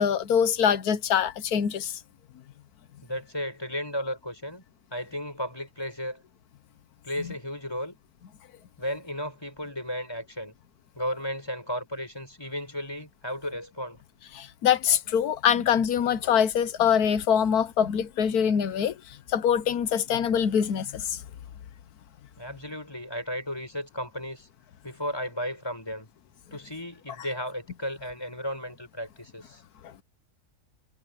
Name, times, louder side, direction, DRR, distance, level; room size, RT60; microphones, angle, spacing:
voice 1, 0.0-1.9 7.2-7.3 14.3-21.2, left 8 dB, 70° left, 1.4 m, -24 dB
voice 2, 3.0-4.6 4.9-6.2 7.0-8.0 8.8-10.5 11.0-14.0 22.4-24.5 24.8-26.1 26.5-29.6, equal, 15° left, 5.9 m, -34 dB
omnidirectional pair, 1.7 m